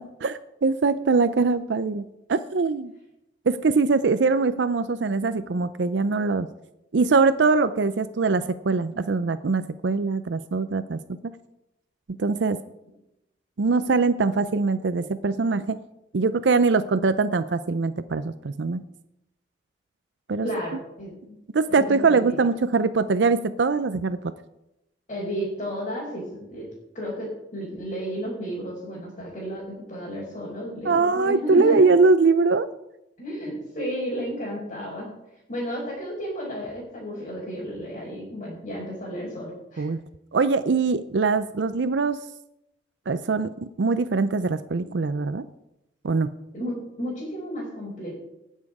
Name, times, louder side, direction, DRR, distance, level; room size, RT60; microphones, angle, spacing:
voice 1, 0.0-2.9 3.5-6.5 6.9-11.0 12.2-12.6 13.6-15.8 16.1-18.8 20.3-20.5 21.5-24.3 30.8-32.7 39.8-40.0 40.3-42.2 43.1-45.5 46.0-46.3, right 4 dB, 80° right, 12 dB, 0.5 m, -22 dB
voice 2, 20.4-21.4 21.7-22.4 25.1-26.7 26.9-31.8 33.2-35.1 35.5-39.9 46.5-48.1, equal, 45° left, -6 dB, 4.6 m, -32 dB
19.0 x 7.4 x 4.9 m, 0.87 s
head